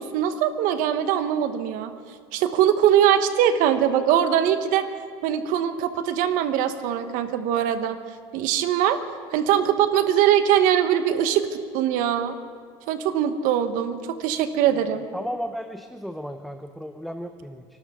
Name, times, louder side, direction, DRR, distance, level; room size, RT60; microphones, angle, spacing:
voice 1, 0.0-1.9 2.3-4.9 5.2-8.0 8.3-9.0 9.3-12.4 12.9-15.1, right 10 dB, 70° right, 9 dB, 1.3 m, -22 dB
voice 2, 14.7-17.6, equal, ahead, 6 dB, 0.8 m, -34 dB
29.5 x 12.5 x 3.8 m, 2.1 s
supercardioid pair, 105°, 15 cm